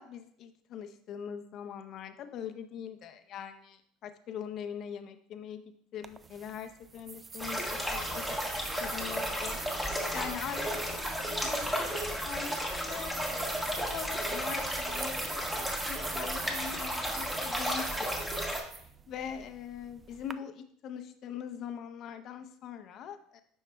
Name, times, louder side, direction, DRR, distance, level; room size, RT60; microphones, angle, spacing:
voice 1, 0.0-5.6 5.9-7.7 7.9-8.4 8.6-13.5 13.8-18.1 18.8-23.4, left 8 dB, 50° left, 8 dB, 0.6 m, -42 dB
sound 1, 6.0-20.3, right 5 dB, 25° right, 0.3 m, -43 dB
sound 2, 7.4-18.6, equal, 5° right, 1.3 m, -34 dB
9.3 x 5.5 x 2.3 m, 0.64 s
supercardioid pair, 110°, 0 cm